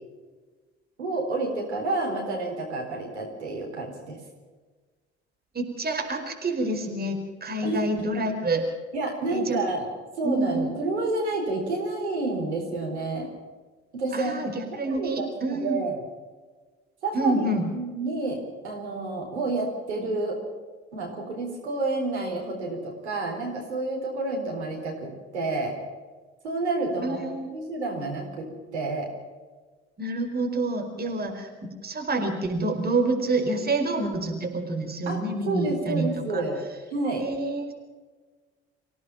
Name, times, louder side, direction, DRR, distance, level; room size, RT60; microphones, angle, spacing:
voice 1, 1.0-4.2 7.6-7.8 8.9-9.9 10.2-13.3 13.9-14.5 14.8-16.0 17.0-18.4 18.6-20.4 20.9-25.7 26.4-27.2 27.5-28.5 28.7-29.1 35.1-36.6 36.9-37.2, right 2 dB, 80° right, 0 dB, 4.1 m, -29 dB
voice 2, 5.5-8.7 9.3-9.6 10.2-10.7 14.1-14.5 14.8-15.8 17.1-17.7 27.0-27.5 30.0-31.5 31.8-36.4 37.2-37.7, right 2 dB, 30° right, 4 dB, 4.9 m, -27 dB
26.0 x 17.0 x 5.8 m, 1.4 s
figure-of-eight pair, 50°, 33 cm